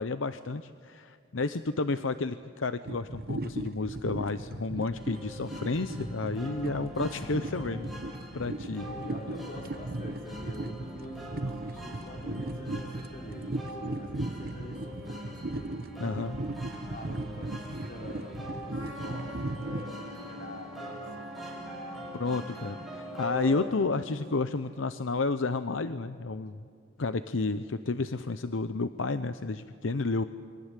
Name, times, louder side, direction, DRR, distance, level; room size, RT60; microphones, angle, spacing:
voice 1, 0.0-7.9 8.3-8.8 16.0-16.3 22.2-26.6 27.0-30.2, left 3 dB, 75° left, 11 dB, 0.8 m, -31 dB
sound 1, 2.8-19.9, right 2 dB, 50° right, 1.0 m, -37 dB
sound 2, 4.9-23.7, equal, ahead, 5.8 m, -43 dB
voice 2, 8.8-16.1 16.9-21.8, left 1 dB, 45° left, 1 dB, 4.7 m, -45 dB
Trumpet, 18.7-24.9, left 1 dB, 70° right, 2.4 m, -47 dB
28.0 x 23.5 x 8.3 m, 2.4 s
head